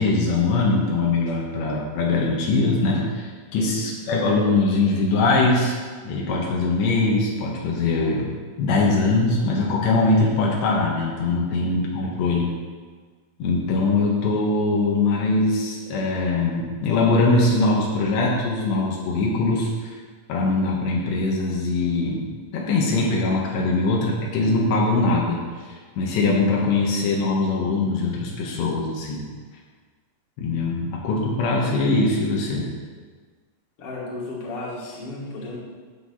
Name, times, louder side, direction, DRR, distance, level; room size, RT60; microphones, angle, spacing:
voice 1, 0.0-5.8 6.0-12.5 13.4-19.9 20.3-22.3 22.5-25.4 25.7-29.3 30.4-32.7, left 3 dB, 80° left, -3 dB, 3.7 m, -22 dB
voice 2, 11.5-12.1 33.8-35.6, left 2 dB, 40° left, -5 dB, 2.8 m, -35 dB
16.0 x 7.1 x 4.3 m, 1.5 s
omnidirectional pair, 5.0 m